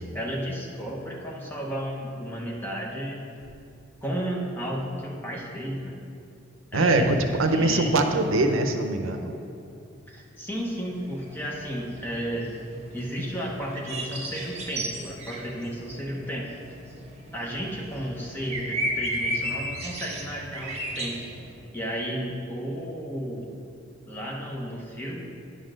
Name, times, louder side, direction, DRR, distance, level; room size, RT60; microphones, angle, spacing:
voice 1, 0.1-3.2 4.0-6.0 6.7-7.9 10.1-12.5 12.9-16.5 17.3-21.2 21.7-23.5 24.0-25.3, equal, 10° left, -2 dB, 0.9 m, -33 dB
voice 2, 6.7-9.4, right 2 dB, 85° right, 6 dB, 0.6 m, -23 dB
Very clear birdsong, 10.9-21.5, right 1 dB, 30° right, 1.1 m, -35 dB
9.4 x 4.1 x 6.4 m, 2.6 s
head